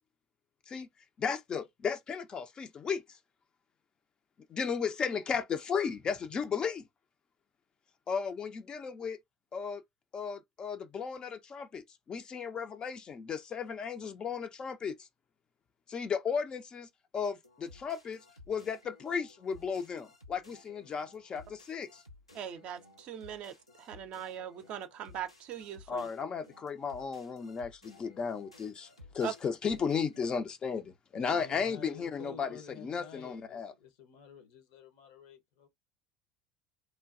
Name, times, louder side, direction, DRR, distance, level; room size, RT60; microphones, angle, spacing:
voice 1, 1.2-3.0 4.5-6.9 8.1-9.2 9.5-9.8 10.1-15.1 15.9-16.9 17.1-18.2 18.5-22.0 25.9-28.9 29.1-33.7, left 6 dB, 30° left, 0.4 m, -35 dB
sound 1, 17.4-30.4, left 2 dB, 90° left, 0.5 m, -57 dB
voice 2, 22.3-26.1 29.2-29.3, right 9 dB, 45° right, 0.4 m, -41 dB
voice 3, 31.1-35.7, left 6 dB, 60° left, 0.7 m, -50 dB
3.1 x 2.2 x 2.4 m
figure-of-eight pair, 70°, 3 cm